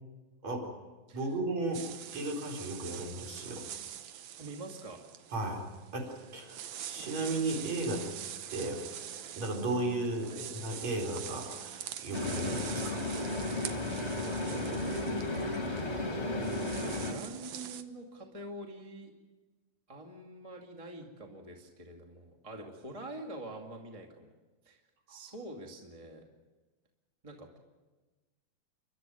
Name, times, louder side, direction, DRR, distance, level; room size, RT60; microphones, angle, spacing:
voice 1, 1.1-1.8 2.1-3.7 5.3-5.6 5.9-6.6 6.9-8.1 8.5-8.9 9.4-13.0 25.1-25.2, right 2 dB, 45° right, 0 dB, 5.4 m, -35 dB
sound 1, 1.7-17.8, right 10 dB, 70° right, 1.7 m, -45 dB
voice 2, 4.3-5.0 10.2-10.5 14.1-16.5 16.8-19.1 19.9-24.3 24.6-24.8 25.1-26.2 27.2-27.6, right 1 dB, 15° right, 1 dB, 1.6 m, -45 dB
sound 2, 12.1-17.1, left 2 dB, 20° left, 2.2 m, -34 dB
30.0 x 12.5 x 9.3 m, 1.2 s
omnidirectional pair, 4.2 m